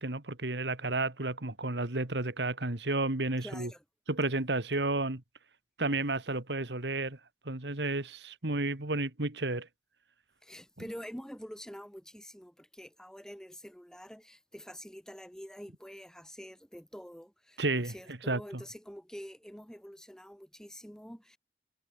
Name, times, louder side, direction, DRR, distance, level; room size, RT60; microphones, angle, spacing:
voice 1, 0.0-3.7 4.1-5.2 5.8-7.2 7.5-9.7 17.6-17.9 18.3-18.6, right 2 dB, 70° right, 2.3 m, -32 dB
voice 2, 3.4-3.8 10.4-21.4, equal, 5° left, 7.1 m, -47 dB
head